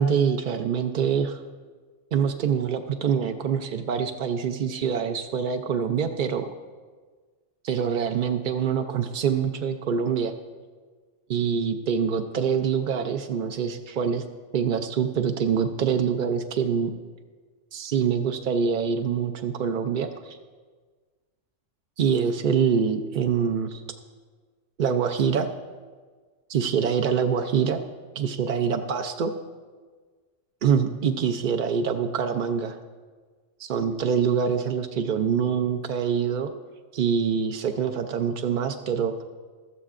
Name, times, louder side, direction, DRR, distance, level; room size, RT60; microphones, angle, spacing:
voice 1, 0.0-1.4 2.1-6.5 7.6-10.3 11.3-14.2 14.5-16.9 17.7-20.4 22.0-23.8 24.8-25.5 26.5-27.8 28.2-29.3 30.6-32.8 33.6-36.5 36.9-39.2, right 7 dB, 65° right, 6 dB, 0.5 m, -25 dB
15.5 x 12.5 x 2.5 m, 1.5 s
omnidirectional pair, 1.4 m